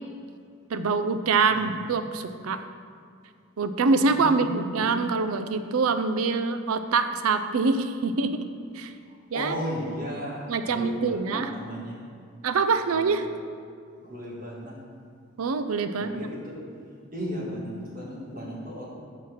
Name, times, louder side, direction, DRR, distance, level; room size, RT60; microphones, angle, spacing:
voice 1, 0.7-2.6 3.6-8.4 8.7-8.9 9.3-9.7 10.5-11.5 12.4-13.3 15.4-16.3, right 4 dB, 85° right, 9 dB, 0.5 m, -25 dB
voice 2, 1.5-1.8 4.0-5.1 9.3-12.0 12.9-13.1 14.0-14.7 16.0-16.6 17.1-18.9, equal, 40° right, -5 dB, 1.9 m, -35 dB
5.8 x 5.6 x 6.4 m, 2.3 s
head